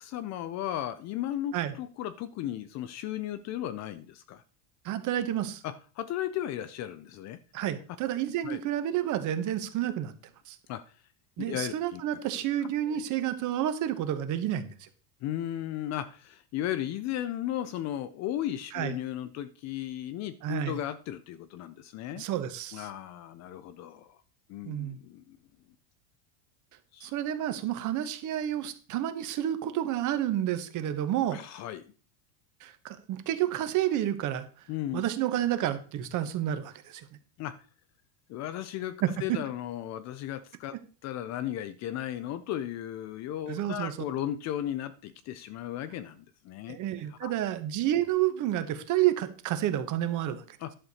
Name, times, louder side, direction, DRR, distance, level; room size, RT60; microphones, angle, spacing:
voice 1, 0.0-4.4 5.6-7.4 8.4-8.6 10.7-10.9 11.4-12.0 12.3-12.4 12.9-13.0 15.2-22.2 22.7-24.2 24.5-25.4 26.9-27.1 31.3-31.9 34.7-35.0 37.4-37.6 38.3-46.8 47.1-47.3 50.6-50.7, left 12 dB, 35° left, 13 dB, 0.5 m, -35 dB
voice 2, 4.8-5.6 7.5-10.1 10.5-10.6 11.4-14.9 18.7-19.0 20.4-20.8 22.1-22.9 24.7-25.0 27.0-31.4 32.6-34.5 34.9-37.1 39.0-39.4 43.5-43.9 46.7-50.6, right 12 dB, 40° right, 11 dB, 1.1 m, -30 dB
11.0 x 6.6 x 4.1 m, 0.38 s
supercardioid pair, 145°, 49 cm